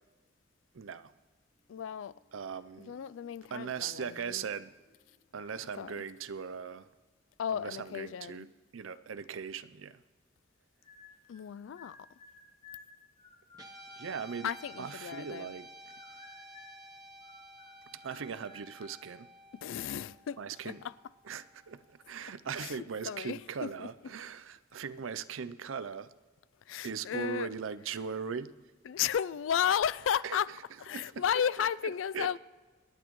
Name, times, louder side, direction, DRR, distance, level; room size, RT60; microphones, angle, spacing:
voice 1, 0.7-1.1 2.3-2.9 3.5-4.7 5.3-6.9 7.5-8.5 8.7-10.0 13.9-14.5 14.8-15.9 17.9-19.3 20.4-20.8 21.2-26.1 26.8-28.5 30.2-30.4 30.9-31.2 32.1-32.4, right 6 dB, 85° right, 0.5 m, -39 dB
sound 1, 1.3-7.6 8.0-8.1, left 1 dB, 60° left, 2.2 m, -70 dB
voice 2, 1.7-2.1 2.8-4.5 5.8-6.0 7.4-8.5 11.3-12.0 14.4-15.5 19.5-20.4 20.6-20.8 22.6-22.8 23.0-23.9 26.7-27.5 28.9-30.5 30.8-32.4, left 8 dB, 80° left, 0.3 m, -33 dB
sound 2, 10.8-11.5 11.8-15.6 15.9-16.9 17.2-19.0, left 4 dB, 25° left, 1.3 m, -55 dB
Guitar, 13.5-22.0, right 1 dB, 20° right, 0.9 m, -53 dB
25.5 x 10.0 x 3.1 m
head